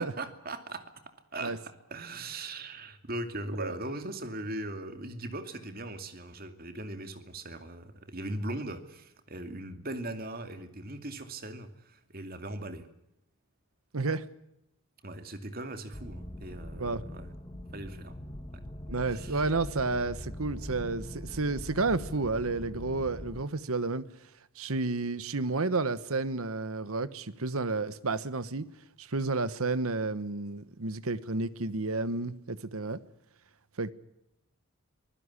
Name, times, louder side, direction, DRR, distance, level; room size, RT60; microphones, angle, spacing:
voice 1, 0.0-1.6 1.9-12.9 15.0-17.3 17.7-18.2 18.5-18.6 19.1-19.5, right 2 dB, 45° right, 2.5 m, -39 dB
voice 2, 13.9-14.2 16.7-17.0 18.9-24.0 24.6-28.7 29.0-33.0 33.8-33.9, right 3 dB, 75° right, 1.2 m, -31 dB
sound 1, 15.9-23.4, left 1 dB, 25° left, 2.9 m, -42 dB
24.5 x 15.5 x 9.8 m
head